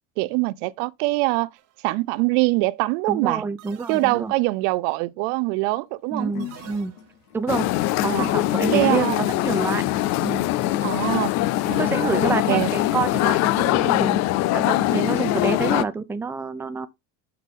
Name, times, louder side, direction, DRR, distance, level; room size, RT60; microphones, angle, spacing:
voice 1, 0.2-1.5 1.8-3.4 3.9-6.3 8.1-8.4 8.7-9.2 10.8-11.3 11.6-12.7, right 21 dB, 90° right, 0.6 m, -23 dB
sound 1, 1.6-1.9 3.6-4.6 6.4-7.4 9.4-10.3, right 12 dB, 45° right, 0.9 m, -47 dB
voice 2, 3.1-4.3 6.1-6.9 7.3-7.7 8.0-9.8 10.2-10.5 11.8-14.3 14.5-16.9, right 4 dB, 5° right, 0.4 m, -27 dB
sound 2, 5.9-13.7, left 10 dB, 80° left, 2.6 m, -44 dB
sound 3, 7.5-15.8, left 15 dB, 50° left, 0.5 m, -22 dB
6.6 x 5.8 x 3.7 m
cardioid pair, 155°, 36 cm